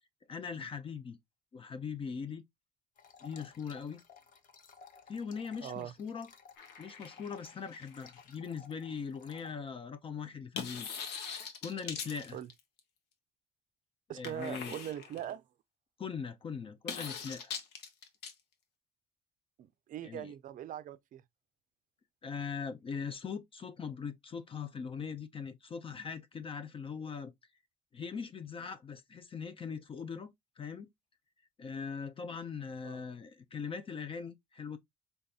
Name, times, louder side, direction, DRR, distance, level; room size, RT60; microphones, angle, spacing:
voice 1, 0.3-1.2 1.5-2.4 3.2-4.0 5.1-6.3 6.8-11.0 11.6-12.4 14.1-14.8 16.0-17.5 20.0-20.3 22.2-27.3 27.9-30.9 31.6-34.8, left 6 dB, 35° left, 0.5 m, -41 dB
sound 1, 3.0-9.5, left 6 dB, 50° left, 0.8 m, -57 dB
voice 2, 5.6-5.9 12.3-12.5 14.1-15.4 19.6-21.2 32.8-33.0, right 11 dB, 50° right, 0.4 m, -41 dB
sound 2, 6.6-8.3 10.5-12.8 14.2-15.3 16.9-18.3, left 6 dB, 80° left, 1.0 m, -42 dB
4.0 x 3.4 x 2.2 m
cardioid pair, 110°, 17 cm